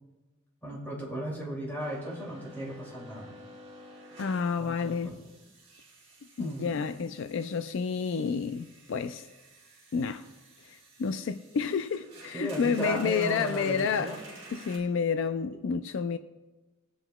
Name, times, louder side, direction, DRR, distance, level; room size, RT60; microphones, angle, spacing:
voice 1, 0.6-3.3 4.6-5.2 6.4-6.8 12.3-14.2, right 1 dB, 10° left, 2.5 m, -36 dB
sound 1, 1.8-14.8, right 1 dB, 30° right, 2.5 m, -51 dB
voice 2, 4.2-5.1 6.4-9.3 9.9-10.3 10.6-14.2 14.5-16.2, left 5 dB, 60° left, 0.3 m, -30 dB
20.5 x 7.8 x 2.2 m
head